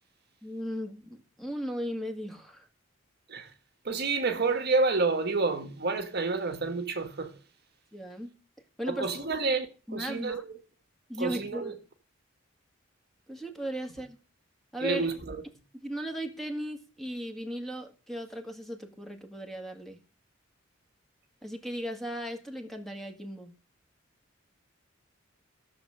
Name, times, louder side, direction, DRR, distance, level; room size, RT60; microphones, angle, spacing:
voice 1, 0.4-2.7 7.9-8.3 8.8-9.1 9.9-10.4 11.1-11.8 13.3-14.2 14.7-15.1 15.8-20.0 21.4-23.5, equal, ahead, 2.0 m, -36 dB
voice 2, 3.8-7.3 8.9-9.7 9.9-10.4 11.2-11.7 14.8-15.4, right 3 dB, 50° right, 1.3 m, -29 dB
14.0 x 7.1 x 6.5 m
head